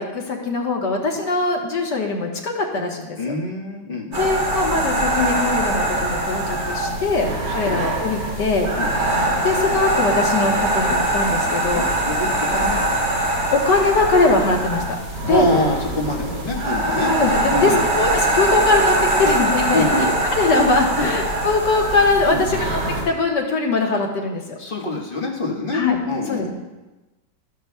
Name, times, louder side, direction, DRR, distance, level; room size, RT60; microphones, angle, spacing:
voice 1, 0.0-3.3 4.2-8.7 9.4-11.8 13.5-15.5 17.0-22.8 23.1-24.4 25.7-26.0 26.3-26.5, left 3 dB, 70° left, 0 dB, 1.9 m, -21 dB
voice 2, 3.2-4.2 7.1-7.8 8.8-8.9 11.7-12.8 15.3-17.1 17.5-17.9 19.7-20.1 21.0-21.1 22.3-22.5 24.6-26.5, left 1 dB, 30° left, -3 dB, 1.4 m, -25 dB
sound 1, 4.1-23.0, right 1 dB, 65° right, 4.2 m, -22 dB
13.0 x 11.0 x 2.2 m, 1.1 s
omnidirectional pair, 2.0 m